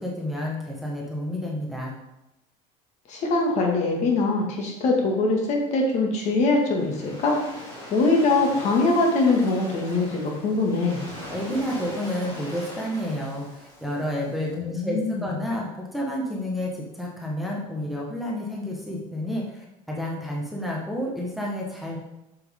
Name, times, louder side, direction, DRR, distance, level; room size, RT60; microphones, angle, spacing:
voice 1, 0.0-1.9 11.3-22.0, equal, ahead, -3 dB, 1.2 m, -30 dB
voice 2, 3.1-7.4 7.9-11.0 14.5-15.3, left 3 dB, 50° left, 0 dB, 2.0 m, -23 dB
Waves surf, 6.2-14.4, left 1 dB, 25° left, 2.8 m, -41 dB
7.7 x 6.9 x 3.7 m, 0.92 s
cardioid pair, 140°, 16 cm